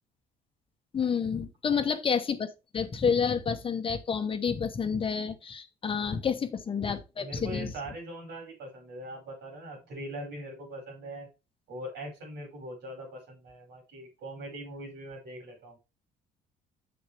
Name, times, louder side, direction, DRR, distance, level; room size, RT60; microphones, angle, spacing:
voice 1, 0.9-2.5 2.7-7.7, left 6 dB, 30° left, 1.0 m, -29 dB
voice 2, 7.2-11.3 11.7-15.8, right 1 dB, 80° right, 5.0 m, -41 dB
7.1 x 6.6 x 3.4 m
cardioid pair, 110°, 17 cm